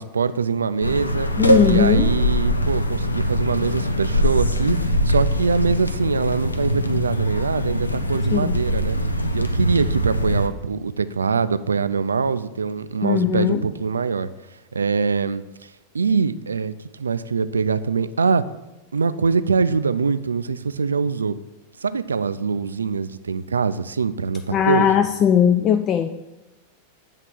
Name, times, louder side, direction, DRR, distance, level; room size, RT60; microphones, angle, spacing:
voice 1, 0.0-1.3 1.6-9.0 9.3-14.3 14.7-18.4 18.9-21.3 21.8-24.9, right 5 dB, 75° right, 13 dB, 0.3 m, -23 dB
sound 1, 0.8-10.5, equal, 80° left, 0.5 m, -22 dB
voice 2, 1.4-2.1 8.3-8.5 13.0-13.6 24.5-26.1, left 8 dB, 30° left, 8 dB, 0.3 m, -19 dB
8.3 x 3.3 x 5.9 m, 1.0 s
figure-of-eight pair, 90°, 0 cm